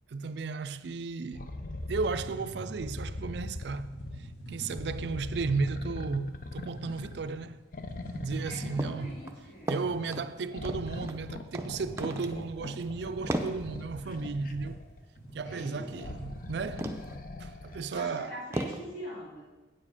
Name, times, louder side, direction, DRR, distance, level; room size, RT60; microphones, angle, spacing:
voice 1, 0.1-1.5 1.9-3.9 4.2-7.6 8.1-9.1 9.7-14.8 15.3-16.9 17.4-18.4, right 4 dB, 65° right, 0.4 m, -34 dB
sound 1, 1.3-2.3 2.8-4.3 4.7-7.3 7.7-9.3 10.5-15.0 15.9-17.9 18.8-18.9, left 2 dB, 45° left, 0.6 m, -41 dB
sound 2, 1.8-16.9, right 1 dB, 85° left, 2.9 m, -47 dB
voice 2, 8.4-10.3 15.4-16.1 17.6-19.4, equal, 65° left, 3.4 m, -44 dB
sound 3, 8.8-9.0 9.3-10.3 10.6-11.2 11.5-11.7 12.0-12.4 12.7-12.8 13.3-13.6 15.9-16.1 16.8-17.2 17.7-17.8 18.5-18.8, right 1 dB, 15° right, 0.6 m, -34 dB
8.7 x 7.4 x 4.9 m
head